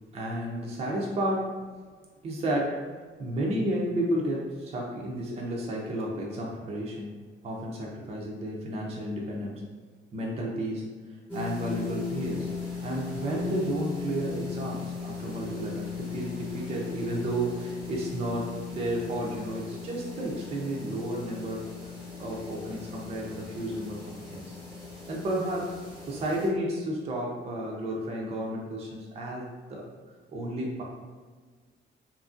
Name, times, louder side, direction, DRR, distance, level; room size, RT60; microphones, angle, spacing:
voice 1, 0.1-1.6 2.2-7.2 7.4-9.6 10.1-10.8 11.3-12.5 12.8-21.7 22.2-24.0 24.3-24.5 25.1-29.9 30.3-30.8, right 1 dB, 30° right, -3 dB, 0.4 m, -32 dB
sound 1, 11.3-26.5, left 6 dB, 10° left, 0.8 m, -38 dB
2.8 x 2.5 x 2.4 m, 1.5 s
cardioid pair, 150°, 20 cm